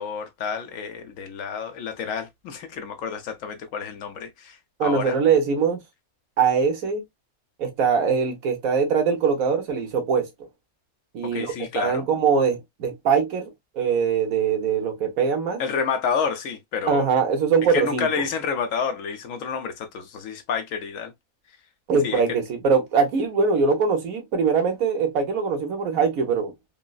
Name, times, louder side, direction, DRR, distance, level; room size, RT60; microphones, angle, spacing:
voice 1, 0.0-5.2 11.2-12.1 15.6-17.1 17.7-21.1 22.0-22.2, left 6 dB, 70° left, 1.0 m, -29 dB
voice 2, 4.8-5.8 6.4-7.0 7.6-10.3 11.1-13.5 13.7-15.6 16.9-18.1 21.9-26.5, right 5 dB, 75° right, 1.4 m, -22 dB
3.7 x 2.0 x 2.3 m
omnidirectional pair, 1.5 m